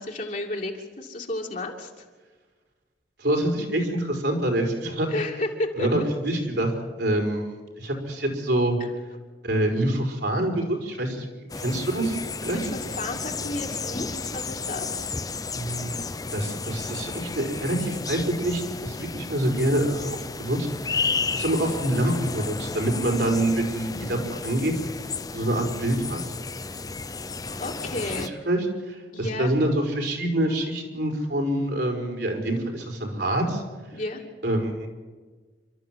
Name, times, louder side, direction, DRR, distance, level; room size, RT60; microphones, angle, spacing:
voice 1, 0.0-2.1 5.1-5.9 8.8-8.9 12.5-15.1 27.6-28.3 29.1-29.5 33.9-34.2, left 1 dB, 50° left, -1 dB, 2.7 m, -32 dB
voice 2, 3.2-5.1 5.8-6.7 7.0-7.5 7.8-8.8 9.4-11.3 11.6-12.6 15.5-16.0 16.3-21.0 21.3-24.7 25.3-26.2 28.4-33.6 34.4-34.9, right 1 dB, 65° right, 3 dB, 4.8 m, -26 dB
sound 1, 11.5-28.3, left 4 dB, 20° left, 0.7 m, -33 dB
28.5 x 13.5 x 7.7 m, 1.4 s
head